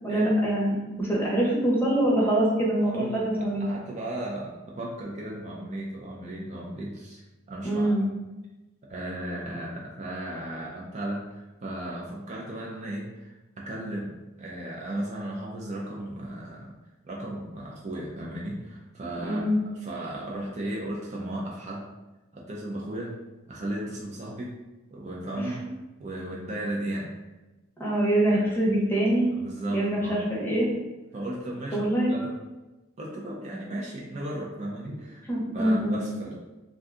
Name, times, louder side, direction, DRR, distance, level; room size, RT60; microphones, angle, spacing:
voice 1, 0.0-3.6 7.6-8.0 19.2-19.6 25.4-25.5 27.8-29.3 29.7-30.7 31.7-32.1 35.3-36.0, right 1 dB, 10° left, -5 dB, 0.7 m, -24 dB
voice 2, 2.8-7.9 8.9-16.7 17.0-21.9 22.3-23.1 23.5-24.5 24.9-25.5 26.0-27.1 28.3-28.5 29.3-30.2 31.1-32.3 33.0-35.3 35.5-36.3, right 1 dB, 35° right, -3 dB, 0.4 m, -35 dB
2.6 x 2.3 x 3.6 m, 1.1 s
head